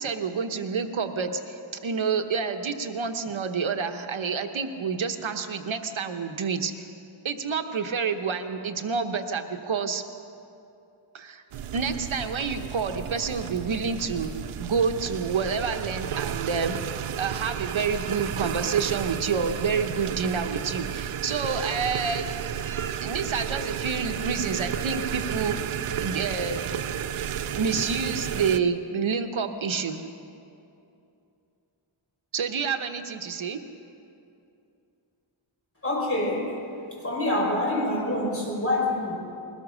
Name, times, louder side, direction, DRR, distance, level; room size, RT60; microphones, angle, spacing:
voice 1, 0.0-6.7 7.2-10.0 11.1-11.4 11.7-14.3 14.6-16.8 17.2-25.6 26.0-26.7 27.5-30.0 32.3-33.6, right 5 dB, 65° right, 6 dB, 1.1 m, -28 dB
sound 1, 11.5-28.6, right 9 dB, 90° right, 0.7 m, -32 dB
voice 2, 35.8-36.5 36.9-39.2, left 1 dB, 25° left, -2 dB, 5.5 m, -26 dB
21.0 x 19.5 x 6.3 m, 2.7 s
wide cardioid pair, 110°, 50 cm